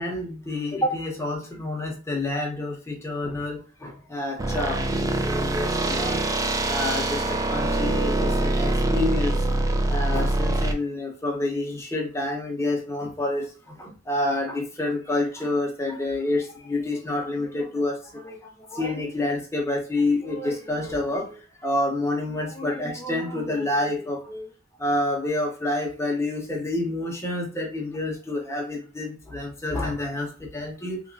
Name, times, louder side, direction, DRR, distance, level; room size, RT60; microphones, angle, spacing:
voice 1, 0.0-6.2 6.7-9.3 9.9-18.4 18.7-24.5 24.8-31.0, left 2 dB, 15° left, 0.8 m, -28 dB
sound 1, 4.4-10.7, right 2 dB, 15° right, 0.3 m, -24 dB
3.0 x 2.9 x 2.6 m
head